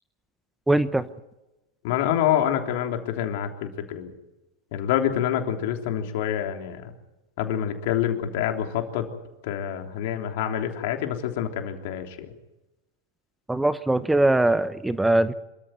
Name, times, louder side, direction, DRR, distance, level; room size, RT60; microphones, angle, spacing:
voice 1, 0.7-1.1 13.5-15.3, right 2 dB, 5° right, 14 dB, 0.8 m, -21 dB
voice 2, 1.8-4.1 4.7-6.9 7.4-9.1 9.4-12.3, left 10 dB, 60° left, 4 dB, 3.3 m, -27 dB
26.0 x 14.0 x 9.3 m, 1.0 s
hypercardioid pair, 110°, 0 cm